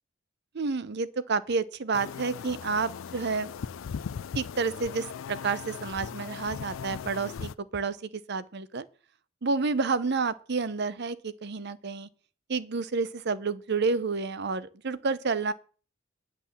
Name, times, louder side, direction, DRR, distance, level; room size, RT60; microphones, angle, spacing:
voice 1, 0.5-3.5 4.3-8.0 8.3-8.9 9.4-12.1 12.5-15.5, right 4 dB, 55° right, 0.7 m, -29 dB
sound 1, 1.9-7.5, left 6 dB, 80° left, 0.4 m, -38 dB
10.5 x 6.0 x 7.2 m
head